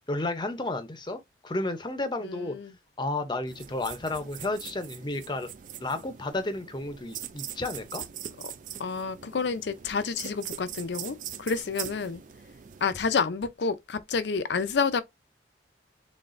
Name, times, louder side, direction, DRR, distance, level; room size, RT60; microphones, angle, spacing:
voice 1, 0.1-2.6 3.0-5.5 5.8-8.0, left 2 dB, 25° left, 0.6 m, -32 dB
voice 2, 2.2-2.7 8.8-12.2 12.8-15.0, left 5 dB, 75° left, 0.5 m, -29 dB
sound 1, 3.5-12.9, right 9 dB, 45° right, 0.3 m, -42 dB
3.9 x 3.5 x 2.5 m
head